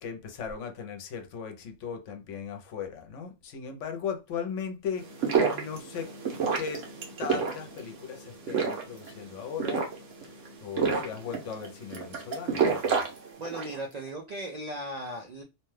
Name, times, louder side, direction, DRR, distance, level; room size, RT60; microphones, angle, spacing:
voice 1, 0.0-5.1 5.5-6.1 6.6-6.9 7.2-9.8 10.6-13.0, left 7 dB, 80° left, 1.0 m, -37 dB
sound 1, 5.0-13.8, right 5 dB, 85° right, 1.1 m, -30 dB
voice 2, 13.4-15.4, right 1 dB, 65° right, 0.4 m, -37 dB
2.8 x 2.2 x 3.1 m
omnidirectional pair, 1.2 m